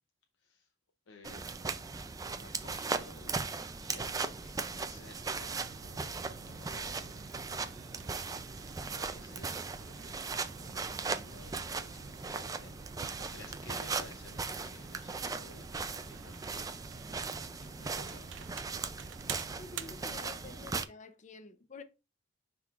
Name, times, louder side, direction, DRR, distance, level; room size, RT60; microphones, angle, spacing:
voice 1, 0.4-0.7 1.1-7.5 8.5-18.5, left 3 dB, 85° left, 0.7 m, -56 dB
sound 1, 1.2-20.8, right 4 dB, 20° right, 0.3 m, -38 dB
sound 2, 5.5-20.6, right 8 dB, 75° right, 0.5 m, -50 dB
voice 2, 19.6-21.8, left 4 dB, 40° left, 0.6 m, -49 dB
10.0 x 3.8 x 2.4 m
head